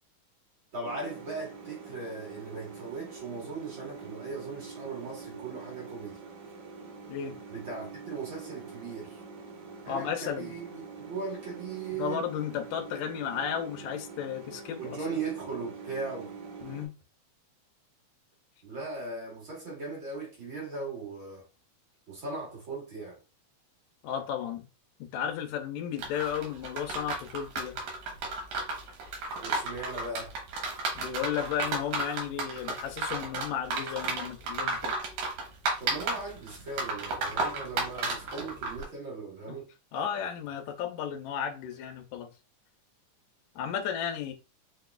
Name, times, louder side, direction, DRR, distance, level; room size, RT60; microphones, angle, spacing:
voice 1, 0.7-6.2 7.5-9.2 9.8-12.2 14.8-16.3 18.6-21.5 22.1-23.2 29.4-30.3 35.8-39.7, right 4 dB, 45° right, 1.8 m, -38 dB
sound 1, 0.8-16.9, right 5 dB, 65° right, 1.5 m, -45 dB
voice 2, 9.9-10.5 11.9-15.0 16.6-16.9 24.0-24.7 25.0-27.8 31.0-35.0 39.5-39.6 39.9-42.3 43.6-44.3, left 8 dB, 80° left, 1.9 m, -34 dB
sound 2, 26.0-38.8, right 3 dB, 90° right, 2.7 m, -33 dB
6.3 x 2.3 x 2.3 m
omnidirectional pair, 3.7 m